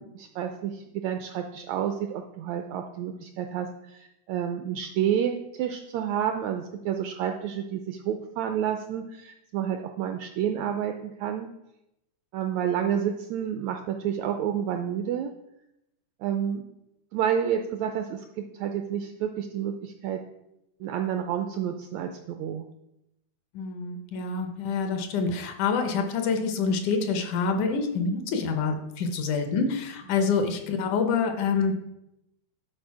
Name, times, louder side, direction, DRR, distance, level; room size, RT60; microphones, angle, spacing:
voice 1, 0.0-11.5 12.3-15.3 16.2-16.6 17.1-20.2 20.8-22.7, right 9 dB, 80° right, 5 dB, 1.6 m, -30 dB
voice 2, 23.5-31.7, left 5 dB, 80° left, 5 dB, 2.3 m, -26 dB
10.5 x 4.0 x 4.7 m, 0.85 s
omnidirectional pair, 3.6 m